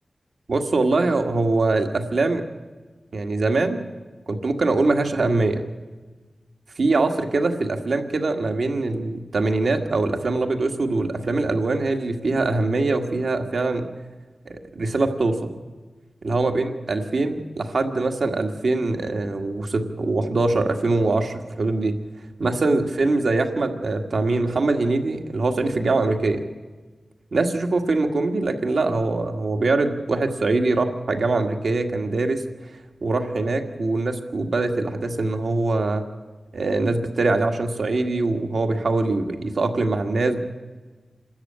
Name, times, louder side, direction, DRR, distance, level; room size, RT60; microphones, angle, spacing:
voice 1, 0.5-2.4 3.1-3.9 4.3-5.6 6.8-13.9 14.5-15.6 16.2-22.0 22.4-26.4 27.3-32.4 33.0-36.0 36.5-40.4, right 3 dB, 75° right, 4 dB, 1.8 m, -23 dB
27.0 x 13.0 x 8.8 m, 1.3 s
wide cardioid pair, 75°, 0 cm